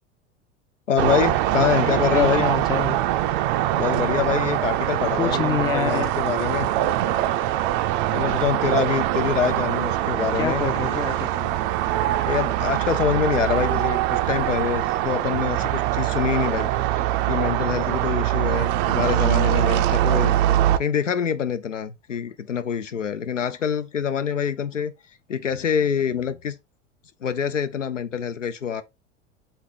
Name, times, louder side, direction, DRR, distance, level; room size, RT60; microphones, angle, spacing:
voice 1, 0.9-2.4 3.7-6.7 8.1-11.0 12.3-16.7 17.3-20.4 20.8-24.9 25.3-26.6 27.2-28.8, left 7 dB, 90° left, 0.5 m, -25 dB
sound 1, 1.0-20.8, right 13 dB, 45° right, 0.4 m, -23 dB
voice 2, 1.8-3.0 5.1-6.1 10.3-11.6, left 7 dB, 10° left, 0.4 m, -27 dB
3.6 x 3.4 x 3.7 m
figure-of-eight pair, 80°, 36 cm